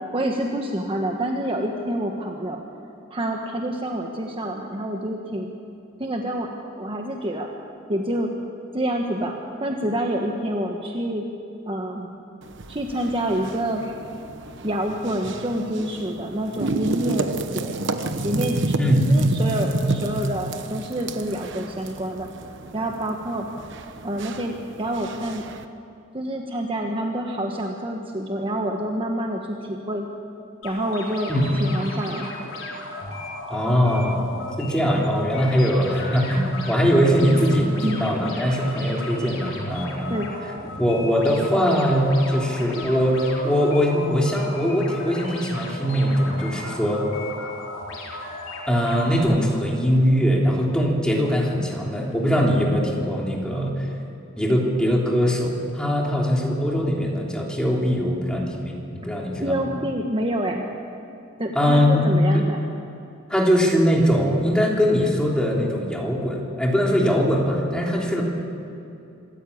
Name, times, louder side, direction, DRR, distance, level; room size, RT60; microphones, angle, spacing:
voice 1, 0.1-2.6 3.1-5.6 6.0-6.5 6.8-7.5 7.9-8.3 8.7-9.3 9.6-11.2 11.7-12.1 12.7-13.8 14.6-17.8 18.2-18.8 19.1-22.3 22.7-23.5 24.0-25.4 26.1-30.0 30.6-31.3 31.6-32.3 37.8-38.0 40.1-40.3 59.4-60.7 61.4-62.6, right 1 dB, 25° right, 2 dB, 1.3 m, -27 dB
sound 1, 12.4-25.6, right 2 dB, 60° right, 1.1 m, -30 dB
sound 2, 30.6-49.2, left 2 dB, 75° left, 4.7 m, -35 dB
voice 2, 33.5-34.3 34.6-40.2 40.8-47.0 48.7-53.9 54.4-59.7 61.6-62.4 63.3-68.2, equal, 5° left, -2 dB, 3.4 m, -21 dB
26.0 x 14.0 x 8.6 m, 2.6 s
head